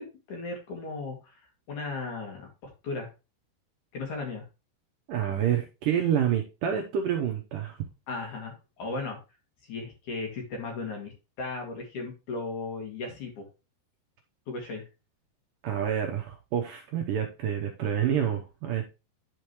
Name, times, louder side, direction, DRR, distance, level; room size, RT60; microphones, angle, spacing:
voice 1, 0.0-1.3 1.7-3.1 3.9-4.4 8.1-9.2 9.7-13.5 14.5-14.8, left 3 dB, 50° left, 2 dB, 3.0 m, -36 dB
voice 2, 5.1-7.9 15.6-18.9, right 9 dB, 80° right, 3 dB, 1.9 m, -28 dB
11.0 x 5.1 x 3.0 m, 0.28 s
omnidirectional pair, 5.1 m